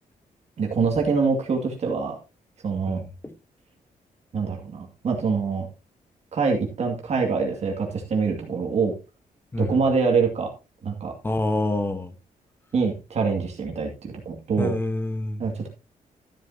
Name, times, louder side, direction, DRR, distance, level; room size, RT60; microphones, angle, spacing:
voice 1, 0.6-2.2 2.6-3.0 4.3-5.7 6.3-8.9 9.6-10.5 10.8-11.1 12.7-14.7 15.4-15.7, right 5 dB, 45° right, 1 dB, 2.3 m, -25 dB
voice 2, 2.9-3.3 9.5-9.8 11.2-12.1 14.6-15.5, left 2 dB, 15° left, 10 dB, 1.2 m, -27 dB
13.0 x 9.2 x 2.8 m, 0.28 s
wide cardioid pair, 165°, 15 cm